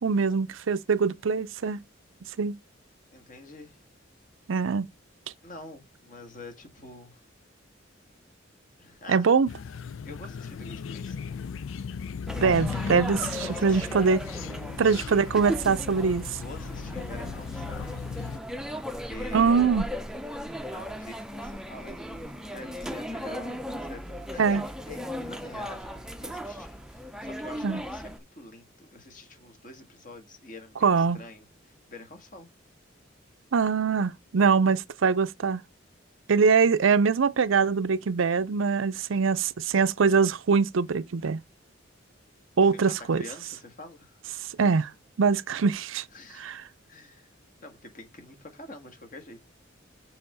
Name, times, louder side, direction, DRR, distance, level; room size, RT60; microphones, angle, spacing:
voice 1, 0.0-1.8 2.4-2.5 4.5-4.9 9.1-9.5 12.4-14.2 14.8-16.3 19.3-19.8 24.4-24.6 27.6-27.8 30.8-31.2 33.5-35.6 36.3-41.4 42.6-43.2 44.6-44.9 45.2-46.0 46.4-46.6, right 5 dB, 85° right, 0.5 m, -23 dB
voice 2, 3.1-3.8 5.4-7.2 8.8-9.4 10.0-11.4 13.2-14.3 14.8-15.3 16.4-17.9 18.9-19.7 20.6-32.5 42.6-44.2 44.7-44.8 45.5-45.6 46.1-46.6 46.9-47.3 47.6-49.4, left 2 dB, 40° left, 1.6 m, -46 dB
sound 1, 9.5-18.4, left 6 dB, 85° left, 0.4 m, -37 dB
sound 2, 12.3-28.2, equal, 5° right, 0.6 m, -37 dB
6.8 x 3.5 x 5.4 m
head